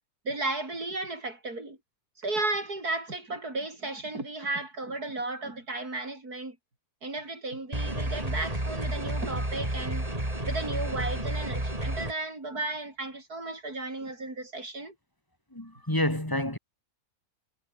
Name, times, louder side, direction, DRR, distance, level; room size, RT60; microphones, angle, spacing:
voice 1, 0.2-1.8 2.2-6.6 7.0-10.1 10.4-14.9, right 2 dB, 85° right, 6.5 m, -34 dB
sound 1, 7.7-12.1, right 1 dB, 25° right, 5.3 m, -31 dB
voice 2, 15.5-16.6, left 1 dB, 15° left, 3.8 m, -28 dB
omnidirectional pair, 1.6 m